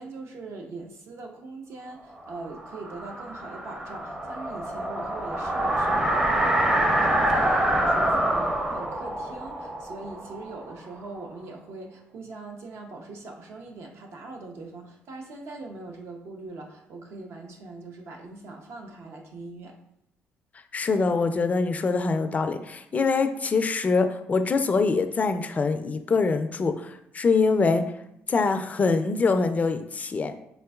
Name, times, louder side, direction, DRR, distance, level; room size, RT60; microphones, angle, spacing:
voice 1, 0.0-19.8, right 3 dB, 65° right, 2 dB, 0.7 m, -41 dB
sound 1, 2.4-11.1, right 1 dB, 15° right, 0.6 m, -26 dB
voice 2, 20.7-27.8 28.3-30.3, left 4 dB, 35° left, 9 dB, 0.3 m, -24 dB
4.1 x 3.7 x 2.3 m, 0.81 s
cardioid pair, 85°, 5 cm